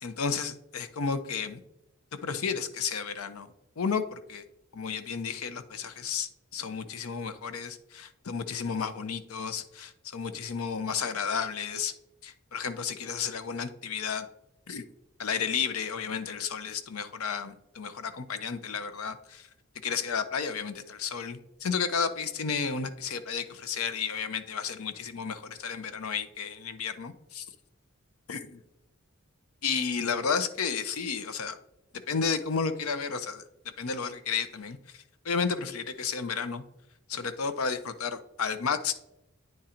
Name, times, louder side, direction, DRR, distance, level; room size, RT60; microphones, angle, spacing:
voice 1, 0.0-1.6 2.2-4.4 4.7-11.9 12.2-14.3 14.7-14.8 15.2-19.5 19.8-27.4 28.3-28.6 29.6-31.6 32.1-33.4 33.8-36.6 37.1-38.9, left 6 dB, 85° left, 11 dB, 0.6 m, -32 dB
9.2 x 3.8 x 4.3 m, 0.85 s
head